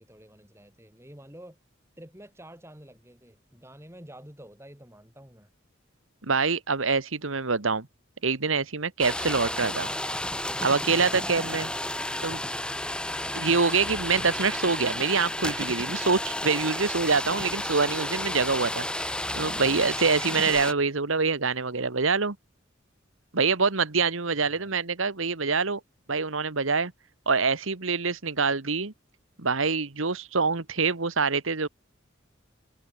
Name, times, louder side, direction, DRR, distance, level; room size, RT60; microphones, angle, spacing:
voice 1, 0.0-1.6 2.0-5.5 13.2-13.6 24.3-24.7, right 1 dB, 15° right, 7.9 m, -49 dB
voice 2, 6.2-7.9 8.2-9.9 10.6-11.7 12.2-12.4 13.3-22.3 23.3-25.8 26.1-26.9 27.3-28.9 29.4-31.7, right 4 dB, 85° right, 1.6 m, -25 dB
sound 1, 9.0-20.7, left 1 dB, 5° left, 3.4 m, -32 dB
head